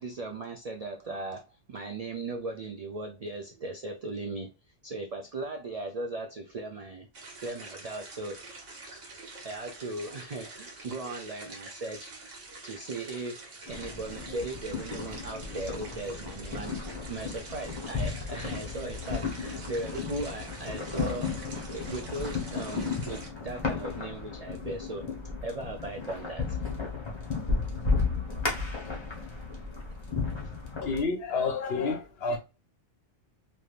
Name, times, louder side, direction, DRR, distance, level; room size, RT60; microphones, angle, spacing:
voice 1, 0.0-4.5 4.8-7.1 7.4-8.5 9.2-12.1 12.6-16.7 17.0-21.3 21.7-25.1 25.4-26.6, right 2 dB, 60° right, 0.4 m, -38 dB
sound 1, 7.1-23.3, right 3 dB, 80° right, 1.4 m, -46 dB
sound 2, 13.7-31.0, left 4 dB, 25° left, 0.9 m, -34 dB
voice 2, 30.8-32.4, left 4 dB, 60° left, 1.0 m, -29 dB
3.3 x 2.6 x 2.4 m
omnidirectional pair, 1.2 m